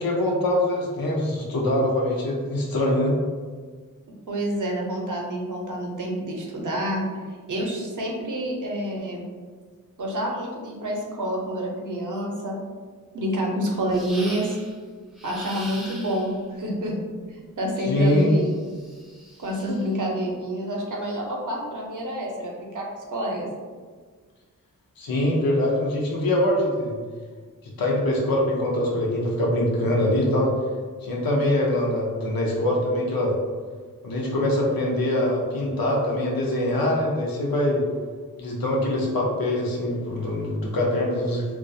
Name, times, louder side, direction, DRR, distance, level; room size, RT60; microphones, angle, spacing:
voice 1, 0.0-3.1 17.8-18.3 25.0-27.0 27.6-30.5 31.0-33.4 34.0-37.8 38.4-41.5, left 1 dB, 90° left, -2 dB, 0.6 m, -23 dB
voice 2, 4.3-7.0 7.5-9.2 10.0-12.6 13.1-14.5 15.2-16.9 17.3-18.5 19.4-23.5, equal, 60° right, -1 dB, 0.6 m, -28 dB
sound 1, 13.9-14.8 15.2-16.4 18.1-20.0, right 1 dB, ahead, 0.4 m, -42 dB
2.3 x 2.2 x 2.6 m, 1.5 s
wide cardioid pair, 85°, 34 cm